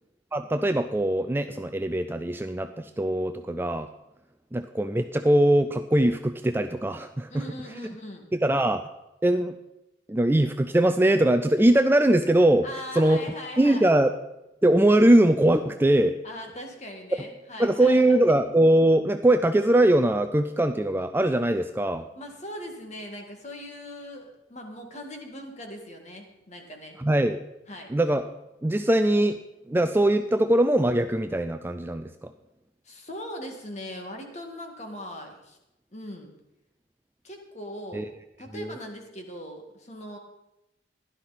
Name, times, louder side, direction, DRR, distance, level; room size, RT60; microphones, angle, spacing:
voice 1, 0.3-3.9 4.5-7.4 8.3-8.8 9.2-9.5 10.1-12.7 13.0-13.2 13.6-14.1 14.6-16.2 17.6-22.0 27.0-27.4 27.9-28.2 28.6-29.4 29.7-32.3 37.9-38.1 38.5-38.7, right 1 dB, 10° right, 8 dB, 0.4 m, -21 dB
voice 2, 7.3-8.3 12.6-13.9 16.2-18.4 22.2-27.0 27.7-27.9 32.8-35.6 35.9-36.3 37.2-38.1 38.4-40.2, left 1 dB, 35° left, 3 dB, 2.1 m, -40 dB
15.5 x 11.5 x 4.2 m, 0.93 s
head